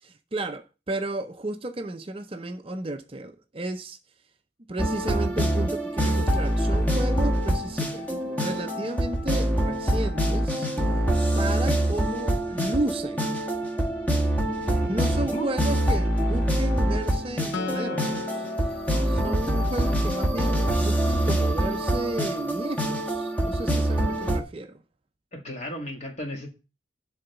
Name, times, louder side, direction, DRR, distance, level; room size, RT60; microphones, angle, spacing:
voice 1, 0.0-4.0 4.7-10.7 10.9-11.1 11.4-13.4 14.8-24.8, right 2 dB, 30° right, 0.5 m, -33 dB
sound 1, 4.8-24.4, right 1 dB, 10° left, 1.2 m, -25 dB
voice 2, 14.6-15.5 18.9-19.3 25.3-26.5, equal, 35° left, 1.7 m, -36 dB
Acoustic guitar, 17.5-21.0, left 4 dB, 70° left, 0.7 m, -37 dB
11.0 x 3.9 x 7.0 m
head